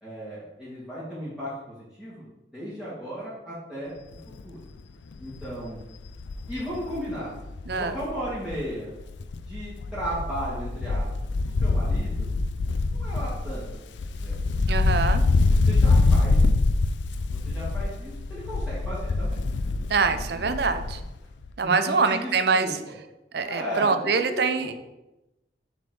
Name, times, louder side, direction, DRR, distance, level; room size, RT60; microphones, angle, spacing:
voice 1, 0.0-2.3 2.5-4.0 4.4-4.6 5.2-5.8 6.5-7.3 7.7-8.9 9.5-11.1 11.6-12.3 12.8-13.7 14.1-14.4 14.9-15.0 15.7-16.4 17.3-19.4 20.0-20.6 21.6-22.7 23.4-24.7, equal, 5° right, -11 dB, 2.2 m, -35 dB
Wind, 4.1-4.4 4.8-4.9 5.2-8.7 9.0-21.2 21.4-21.5, left 3 dB, 85° left, 0.4 m, -25 dB
voice 2, 14.7-15.2 19.9-21.0 21.6-22.8 23.3-24.7, right 4 dB, 65° right, 9 dB, 0.6 m, -24 dB
7.1 x 4.4 x 4.9 m, 0.95 s
head